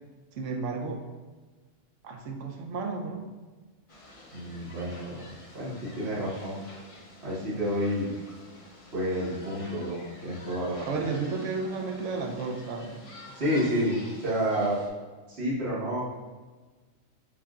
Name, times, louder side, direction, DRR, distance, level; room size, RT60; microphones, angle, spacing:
voice 1, 0.3-1.0 2.0-3.3 10.9-12.9, right 4 dB, 75° right, 3 dB, 1.0 m, -32 dB
sound 1, 3.9-14.9, left 1 dB, 40° left, 0.5 m, -48 dB
voice 2, 4.3-5.2 5.5-6.6 7.2-8.1 8.9-10.8 13.3-14.8 15.3-16.0, equal, 55° right, -8 dB, 1.7 m, -29 dB
7.3 x 2.7 x 2.4 m, 1.3 s
omnidirectional pair, 1.3 m